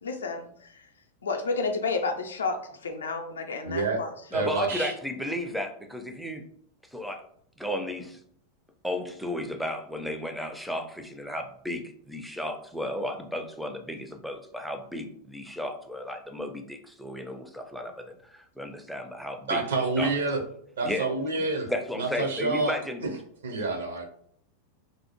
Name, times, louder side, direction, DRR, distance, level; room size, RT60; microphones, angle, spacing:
voice 1, 0.0-0.5 1.2-4.1, left 4 dB, 70° left, 4 dB, 0.4 m, -30 dB
voice 2, 3.6-4.0 4.3-4.9 19.5-20.4 20.8-21.7 22.0-22.7 23.0-23.1 23.4-24.1, right 3 dB, 65° right, 1 dB, 0.6 m, -28 dB
voice 3, 4.3-6.4 6.9-7.2 7.6-8.2 8.8-19.6 20.0-20.1 20.8-21.1 21.7-23.0, left 1 dB, ahead, 4 dB, 0.4 m, -34 dB
2.6 x 2.0 x 2.9 m, 0.63 s
figure-of-eight pair, 90°, 0 cm